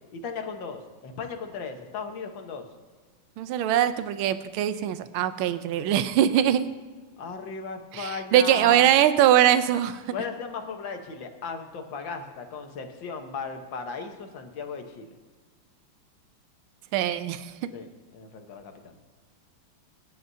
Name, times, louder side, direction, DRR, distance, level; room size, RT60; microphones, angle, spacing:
voice 1, 0.1-2.7 6.4-6.5 7.2-8.9 10.1-15.1 17.7-17.9 18.1-18.9, left 5 dB, 65° left, 5 dB, 1.9 m, -36 dB
voice 2, 3.4-6.6 7.9-10.0 16.9-17.7, right 11 dB, 80° right, 11 dB, 1.5 m, -22 dB
22.5 x 11.0 x 2.7 m, 1.4 s
omnidirectional pair, 2.4 m